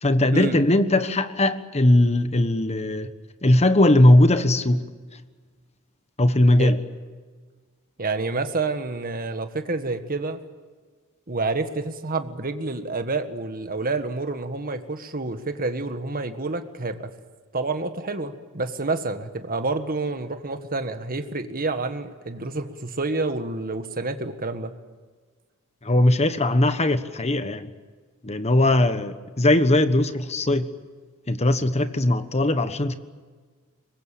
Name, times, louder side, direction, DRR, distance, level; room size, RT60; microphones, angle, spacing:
voice 1, 0.0-3.1 3.4-4.8 6.2-6.8 25.8-27.7 28.2-30.7 31.3-32.9, left 1 dB, 30° left, 1.3 m, -19 dB
voice 2, 8.0-10.4 11.3-17.1 17.5-24.7, right 3 dB, 40° right, 1.7 m, -28 dB
24.0 x 21.0 x 8.6 m
head